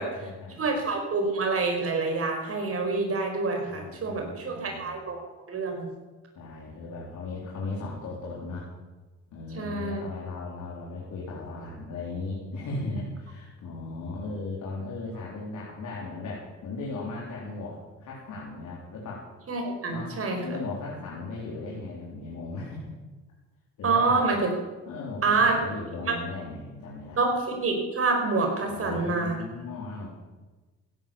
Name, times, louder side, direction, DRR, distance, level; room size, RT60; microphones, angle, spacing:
voice 1, 0.0-0.7 3.6-4.9 6.3-8.7 9.3-19.2 19.9-20.1 20.4-22.8 23.8-24.3 24.8-27.2 28.7-30.1, left 3 dB, 75° left, -5 dB, 4.0 m, -37 dB
voice 2, 0.6-5.2 5.5-5.9 9.5-10.0 19.5-20.4 23.8-24.4 25.2-25.6 26.1-26.2 27.2-29.4, right 3 dB, 50° right, 2 dB, 5.1 m, -27 dB
15.5 x 11.0 x 7.2 m, 1.2 s
cardioid pair, 90°, 30 cm